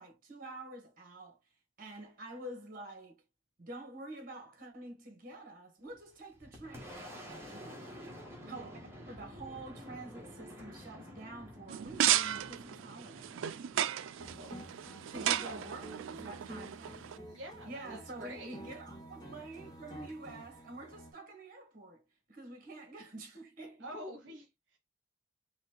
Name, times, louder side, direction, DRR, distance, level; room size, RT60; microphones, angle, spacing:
voice 1, 0.0-1.4 1.8-3.2 3.6-7.9 8.5-8.7 9.1-13.4 15.1-17.1 17.6-22.0 22.3-24.0, right 2 dB, 45° right, 1.4 m, -48 dB
Boom, 5.9-15.3, equal, 10° right, 1.4 m, -50 dB
voice 2, 8.4-8.8 14.1-14.6 15.2-15.7 17.3-18.6 23.8-24.8, equal, 65° right, 0.9 m, -47 dB
sound 1, 11.7-17.2, right 11 dB, 80° right, 0.3 m, -34 dB
sound 2, 14.2-21.1, equal, 20° left, 1.0 m, -50 dB
4.2 x 2.3 x 4.4 m
head